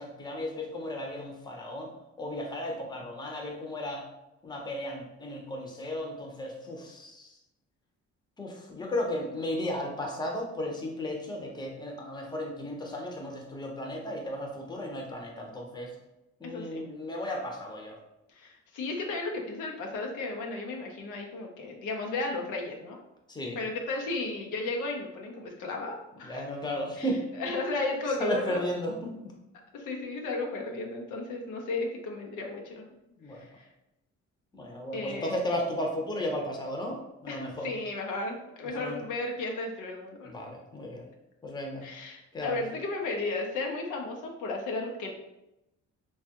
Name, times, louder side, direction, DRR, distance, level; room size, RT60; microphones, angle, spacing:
voice 1, 0.0-1.9 2.2-4.0 4.4-7.3 8.4-15.9 16.4-18.0 23.3-23.6 26.2-27.2 28.2-29.3 33.2-33.4 34.5-37.8 38.6-39.0 40.2-41.1 41.4-41.8 42.3-42.6, left 1 dB, 15° left, 0 dB, 0.7 m, -34 dB
voice 2, 16.4-16.8 18.4-23.0 23.6-26.5 27.0-28.7 29.7-32.8 33.3-33.6 34.9-35.3 37.3-40.3 41.8-45.1, left 3 dB, 85° left, 1 dB, 0.6 m, -34 dB
3.2 x 2.3 x 2.8 m, 0.90 s
cardioid pair, 90°, 30 cm